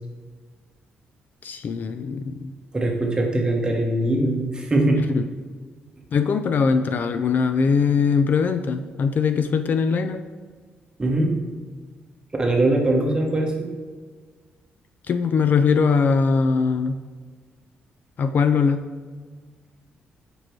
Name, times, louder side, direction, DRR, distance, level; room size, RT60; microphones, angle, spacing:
voice 1, 1.4-2.5 5.1-5.2 6.1-10.2 15.1-17.0 18.2-18.9, left 5 dB, 50° left, 9 dB, 0.3 m, -21 dB
voice 2, 2.7-5.0 11.0-11.3 12.4-13.7, right 1 dB, 20° right, 1 dB, 1.2 m, -21 dB
5.0 x 4.7 x 4.5 m, 1.5 s
cardioid pair, 95°, 4 cm